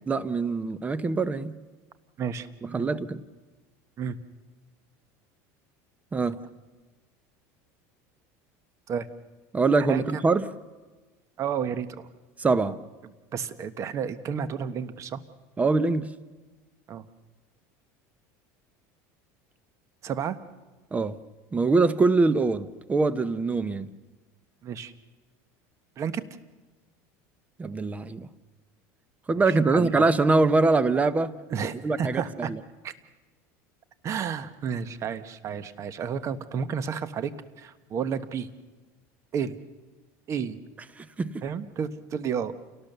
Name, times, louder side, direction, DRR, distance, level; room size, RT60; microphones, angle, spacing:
voice 1, 0.1-1.6 2.6-3.2 6.1-6.4 9.5-10.5 12.4-12.8 15.6-16.1 20.9-21.2 21.5-23.9 27.6-28.3 29.3-31.3 31.8-32.2 32.5-32.6 41.0-41.4, right 3 dB, 20° right, 15 dB, 0.8 m, -23 dB
voice 2, 2.2-2.9 4.0-4.2 8.9-9.1 9.9-10.2 11.4-12.1 13.3-15.2 16.9-17.0 20.0-20.4 24.6-24.9 26.0-26.2 29.5-30.1 31.5-32.5 32.8-32.9 34.0-37.3 37.6-38.5 39.3-39.6 40.3-40.6 41.4-42.5, right 7 dB, 40° right, 12 dB, 1.2 m, -31 dB
28.5 x 18.0 x 6.8 m, 1.3 s
supercardioid pair, 125°, 8 cm